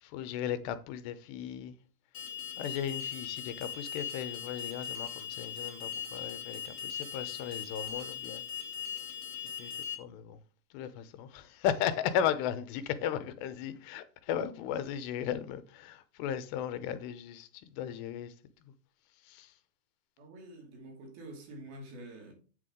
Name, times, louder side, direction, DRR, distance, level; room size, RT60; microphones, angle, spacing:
voice 1, 0.0-1.7 2.6-8.4 9.6-9.7 10.0-10.4 10.7-18.3 19.3-19.5, left 9 dB, 80° left, 2.9 m, -36 dB
Alarm, 2.1-9.9, left 8 dB, 55° left, 3.2 m, -39 dB
voice 2, 20.2-22.3, right 1 dB, 60° right, 4.3 m, -47 dB
8.4 x 8.0 x 3.7 m
omnidirectional pair, 4.9 m